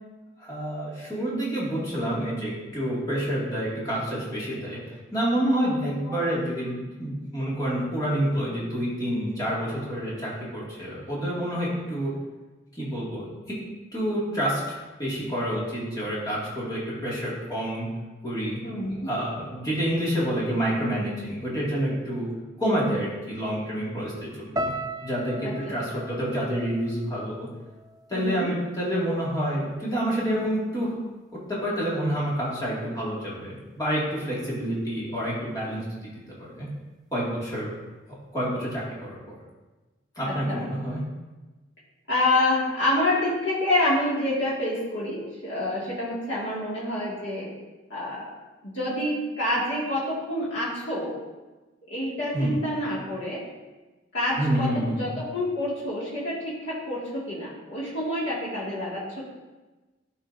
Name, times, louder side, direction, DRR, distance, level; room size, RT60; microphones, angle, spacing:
voice 1, 0.4-4.8 5.1-12.1 12.8-13.6 13.9-14.6 15.0-17.9 18.2-18.6 19.1-22.3 22.6-24.7 25.0-27.5 28.1-31.0 31.5-36.1 36.4-36.7 37.1-37.8 38.3-39.4 40.2-41.0 52.3-52.5 54.4-55.0, equal, 20° left, -7 dB, 2.0 m, -28 dB
voice 2, 5.8-6.2 18.6-19.1 25.6-25.8 28.1-28.5 40.2-40.6 42.1-47.5 47.9-48.3 48.6-51.2 51.9-53.4 54.1-59.2, left 1 dB, 70° left, -8 dB, 2.0 m, -27 dB
sound 1, 24.6-28.8 29.0-29.8 30.4-30.6, right 1 dB, 20° right, 0.3 m, -37 dB
12.5 x 4.3 x 2.6 m, 1.2 s
head